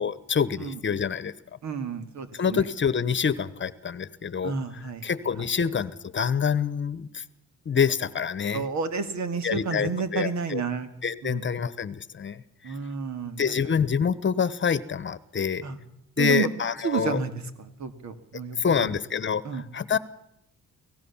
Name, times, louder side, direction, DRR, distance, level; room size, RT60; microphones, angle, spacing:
voice 1, 0.0-1.3 2.4-4.5 5.0-7.2 7.7-8.6 9.4-10.6 11.0-12.7 13.4-15.6 16.2-17.2 18.6-19.4 19.7-20.0, left 7 dB, 40° left, 18 dB, 1.1 m, -26 dB
voice 2, 1.6-2.6 4.4-5.4 8.5-10.9 11.2-11.4 12.6-13.8 15.6-15.8 16.2-16.5 16.8-19.0 19.4-19.6, right 5 dB, 65° right, 10 dB, 2.3 m, -31 dB
24.5 x 17.5 x 7.2 m, 0.80 s
cardioid pair, 90°, 30 cm